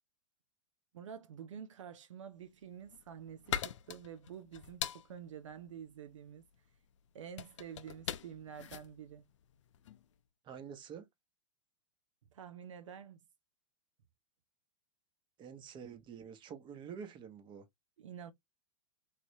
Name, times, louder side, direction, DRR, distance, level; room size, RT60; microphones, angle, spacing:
voice 1, 0.9-6.4 7.1-9.3 12.3-13.2 18.0-18.3, right 8 dB, 80° right, 0.5 m, -49 dB
sound 1, 2.6-10.1, left 10 dB, 75° left, 0.5 m, -43 dB
voice 2, 10.4-11.1 15.4-17.6, right 7 dB, 30° right, 0.9 m, -48 dB
3.2 x 2.9 x 2.7 m
hypercardioid pair, 110°, 16 cm